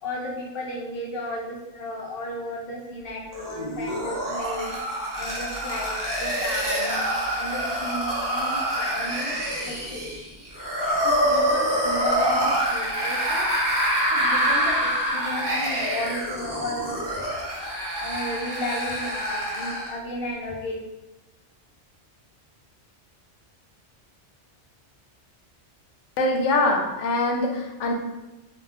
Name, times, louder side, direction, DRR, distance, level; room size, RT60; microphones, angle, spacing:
voice 1, 0.0-4.8 5.1-7.1 7.3-10.1 11.0-13.5 14.1-17.0 18.0-20.7, left 1 dB, 60° left, -2 dB, 0.7 m, -34 dB
sound 1, 3.3-20.0, equal, 25° right, 0.5 m, -26 dB
voice 2, 26.2-27.9, left 2 dB, 90° left, 1 dB, 0.9 m, -23 dB
2.3 x 2.2 x 3.4 m, 1.0 s
omnidirectional pair, 1.2 m